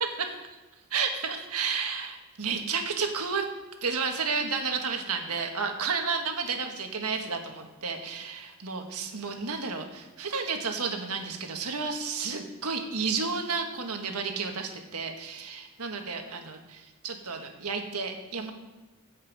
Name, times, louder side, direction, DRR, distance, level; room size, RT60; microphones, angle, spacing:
voice 1, 0.9-3.5 3.8-18.5, right 5 dB, 85° right, 4 dB, 1.5 m, -32 dB
15.5 x 5.5 x 5.3 m, 1.2 s
head